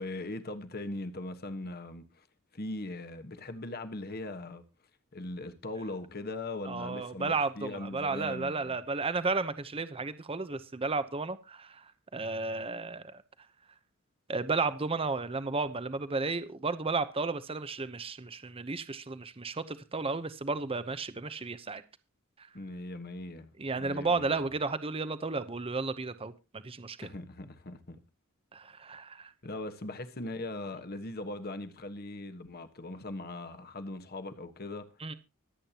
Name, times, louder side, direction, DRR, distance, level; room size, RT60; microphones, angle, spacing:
voice 1, 0.0-2.3 2.5-4.6 5.1-8.8 22.5-24.5 27.0-28.0 29.4-35.1, left 2 dB, 50° left, 1.4 m, -40 dB
voice 2, 6.7-11.9 12.1-13.2 14.3-21.8 23.6-27.1 28.5-29.3 35.0-35.1, right 3 dB, 25° right, 0.8 m, -33 dB
25.0 x 8.6 x 2.9 m
head